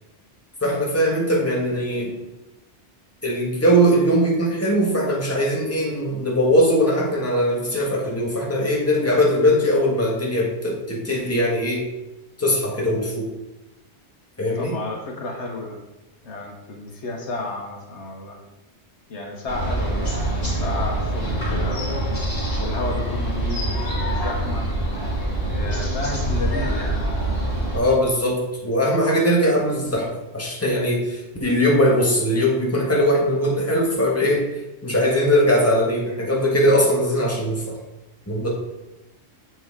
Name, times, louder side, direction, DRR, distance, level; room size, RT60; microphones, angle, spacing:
voice 1, 0.6-2.2 3.2-11.9 12.4-13.3 14.4-14.8 27.7-34.5 34.8-37.7 38.3-38.5, equal, 15° left, -3 dB, 1.5 m, -20 dB
voice 2, 14.6-15.8 16.2-18.4 19.1-20.3 20.6-22.0 22.6-24.7 25.4-27.0, left 2 dB, 80° left, 1 dB, 1.4 m, -32 dB
sound 1, 19.5-27.8, right 1 dB, 30° left, 3.0 m, -25 dB
7.6 x 6.1 x 3.7 m, 0.98 s
omnidirectional pair, 1.2 m